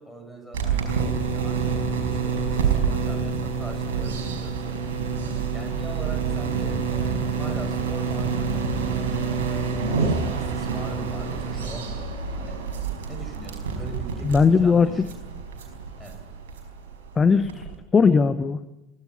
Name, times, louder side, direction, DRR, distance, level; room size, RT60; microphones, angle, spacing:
voice 1, 0.0-4.8 5.2-9.2 9.4-12.6 13.1-15.2 16.0-16.2, equal, ahead, 3 dB, 7.7 m, -42 dB
sound 1, 0.5-17.7, right 5 dB, 65° right, 4.9 m, -27 dB
voice 2, 14.2-14.9 17.2-17.7 17.9-18.7, left 5 dB, 20° left, 12 dB, 1.0 m, -18 dB
23.5 x 16.5 x 10.0 m, 0.94 s
figure-of-eight pair, 70°, 0 cm